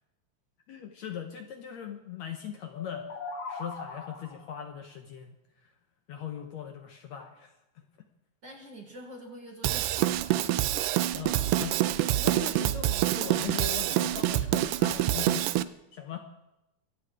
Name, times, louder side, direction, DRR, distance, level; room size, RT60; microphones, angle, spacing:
voice 1, 0.7-3.1 3.5-5.3 5.6-5.7 6.1-7.5 11.1-15.5 15.9-16.2, left 9 dB, 65° left, 5 dB, 2.0 m, -40 dB
sound 1, 2.7-4.5, left 4 dB, 50° left, 2.8 m, -39 dB
voice 2, 8.4-10.4, equal, 40° right, 1 dB, 1.9 m, -46 dB
Drum kit / Drum, 9.6-15.6, right 14 dB, 80° right, 2.0 m, -26 dB
24.5 x 8.8 x 4.9 m, 0.91 s
omnidirectional pair, 4.1 m